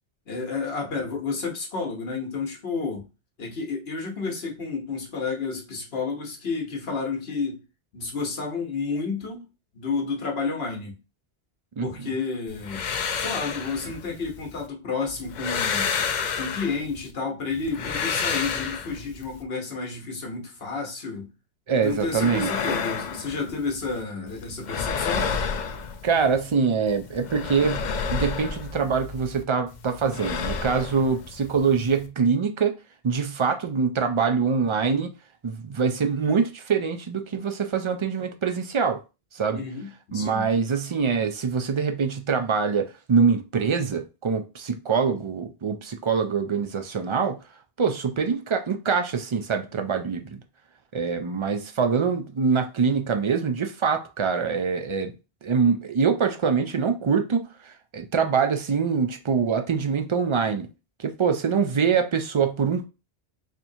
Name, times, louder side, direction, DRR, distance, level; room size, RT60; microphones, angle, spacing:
voice 1, 0.3-3.0 3.4-7.6 7.9-9.5 9.7-10.9 11.8-12.8 13.2-15.9 16.4-21.3 21.7-25.3 39.5-40.5, left 4 dB, 75° left, 1.3 m, -31 dB
sound 1, 12.5-14.7 15.1-17.1 17.5-19.4 21.8-24.0 24.3-26.5 26.9-29.4 29.7-32.1, left 6 dB, 55° left, 0.6 m, -31 dB
voice 2, 21.7-22.5 26.0-32.7 33.0-35.1 35.4-39.0 39.3-39.6 40.1-47.4 47.8-50.4 50.9-55.1 55.4-60.7 61.0-62.9, right 5 dB, 45° right, 0.4 m, -24 dB
4.3 x 2.9 x 2.7 m
omnidirectional pair, 1.0 m